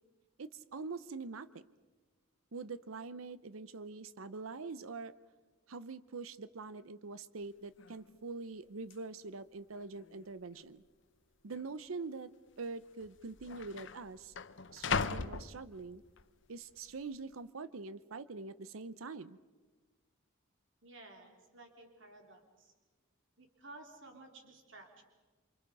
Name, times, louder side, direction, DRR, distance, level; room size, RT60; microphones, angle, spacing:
voice 1, 0.4-1.6 2.5-5.1 5.7-10.8 11.4-14.3 14.7-16.0 16.5-19.4, right 4 dB, 80° right, 15 dB, 0.7 m, -44 dB
sound 1, 7.4-7.5 7.8-8.2 8.9-9.0 9.7-10.3 10.5-10.7 11.5-11.7 12.7-12.8 13.0-16.2 16.7-17.1, left 5 dB, 60° left, 0.8 m, -39 dB
voice 2, 20.8-22.7 23.4-25.0, right 2 dB, 60° right, 3 dB, 3.5 m, -54 dB
28.0 x 26.0 x 5.3 m, 1.3 s
head